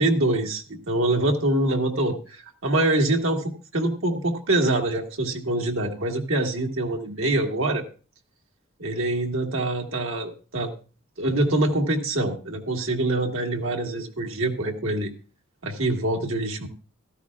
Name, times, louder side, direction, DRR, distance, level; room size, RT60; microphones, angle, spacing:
voice 1, 0.0-7.8 8.8-10.7 11.2-15.1 15.6-16.7, right 2 dB, 75° right, 1 dB, 1.7 m, -25 dB
15.0 x 13.0 x 2.4 m, 0.36 s
head